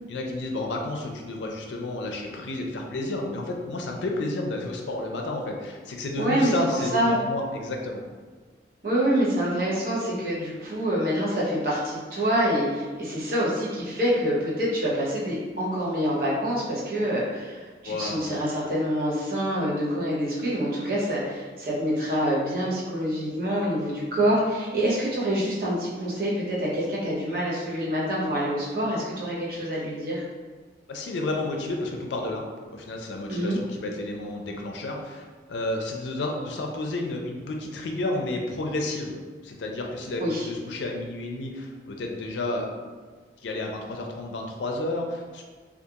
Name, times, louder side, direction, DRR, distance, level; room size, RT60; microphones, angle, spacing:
voice 1, 0.1-8.0 17.8-18.2 30.9-32.4 32.7-39.1 39.4-42.7 43.4-45.4, left 2 dB, 80° left, 1 dB, 0.4 m, -31 dB
voice 2, 6.2-6.5 6.9-7.2 8.8-30.2 33.3-33.6 40.2-40.5, equal, 50° right, -6 dB, 0.7 m, -26 dB
2.3 x 2.3 x 2.8 m, 1.4 s
head